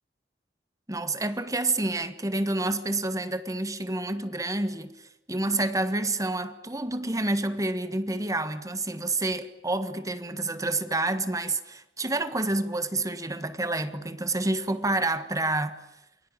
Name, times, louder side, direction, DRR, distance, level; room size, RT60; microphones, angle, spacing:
voice 1, 0.9-15.8, right 2 dB, 20° right, 1.6 m, -28 dB
28.5 x 22.5 x 9.0 m
head